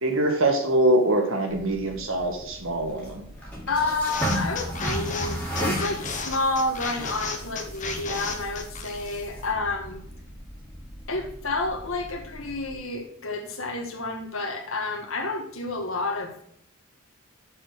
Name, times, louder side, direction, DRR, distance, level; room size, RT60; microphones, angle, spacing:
voice 1, 0.0-3.2, right 1 dB, 65° right, 4 dB, 1.6 m, -23 dB
sound 1, 1.5-12.7, equal, 5° left, 3.1 m, -35 dB
voice 2, 3.7-10.0 11.1-16.4, left 2 dB, 65° left, 1 dB, 1.9 m, -30 dB
sound 2, 4.0-9.3, left 4 dB, 35° left, 1.5 m, -34 dB
7.3 x 6.7 x 4.7 m, 0.69 s
head